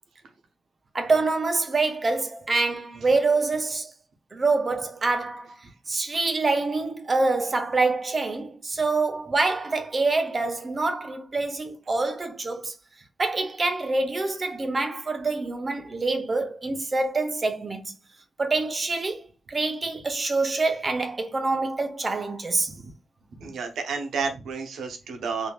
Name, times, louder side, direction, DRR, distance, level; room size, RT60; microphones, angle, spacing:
voice 1, 0.9-3.9 4.3-5.6 5.9-12.7 13.2-17.9 18.4-22.7, right 3 dB, 30° right, 0.5 m, -26 dB
voice 2, 23.4-25.5, right 5 dB, 90° right, 0.7 m, -31 dB
3.2 x 2.6 x 2.2 m
wide cardioid pair, 145°, 0 cm